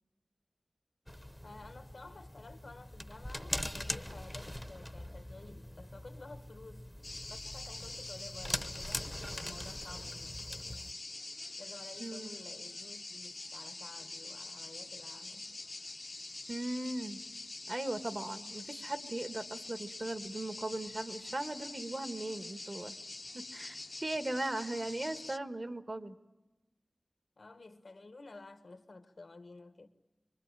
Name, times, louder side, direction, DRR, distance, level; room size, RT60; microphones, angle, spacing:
sound 1, 1.1-10.9, equal, 10° left, 0.9 m, -42 dB
voice 1, 1.4-6.9 7.3-11.1 11.6-15.6 27.4-29.9, left 3 dB, 75° left, 1.4 m, -53 dB
sound 2, 7.0-25.4, left 2 dB, 50° left, 0.8 m, -45 dB
voice 2, 16.5-17.2 17.7-22.9 23.3-26.2, right 2 dB, 45° right, 1.3 m, -38 dB
25.0 x 23.5 x 9.0 m
wide cardioid pair, 65°, 0 cm